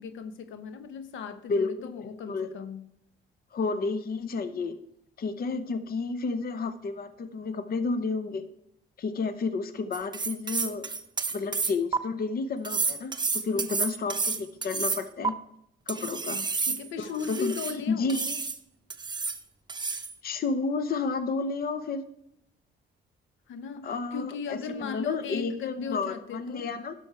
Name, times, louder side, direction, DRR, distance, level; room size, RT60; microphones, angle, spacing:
voice 1, 0.0-2.9 13.5-13.8 16.0-18.1 23.5-26.7, left 6 dB, 75° left, 0.9 m, -37 dB
voice 2, 1.5-1.9 2.3-2.5 3.5-4.8 5.2-8.5 9.0-10.9 11.3-15.3 15.9-16.4 17.0-17.6 17.9-18.4 20.2-22.0 23.8-26.9, left 4 dB, 50° left, 0.8 m, -31 dB
sound 1, 9.9-12.0 12.6-15.3 15.9-17.8 18.1-18.6 18.9-19.4 19.7-20.1, right 4 dB, 20° right, 0.8 m, -30 dB
11.5 x 6.3 x 4.3 m
cardioid pair, 90°, 20 cm